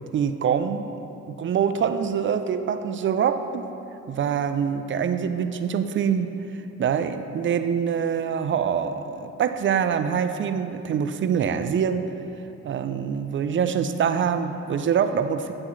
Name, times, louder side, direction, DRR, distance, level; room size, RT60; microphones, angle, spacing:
voice 1, 0.1-0.9 1.3-3.7 4.1-12.1 12.6-15.5, right 7 dB, 40° right, 10 dB, 0.4 m, -25 dB
8.8 x 7.4 x 3.1 m, 2.8 s
cardioid pair, 90°, 30 cm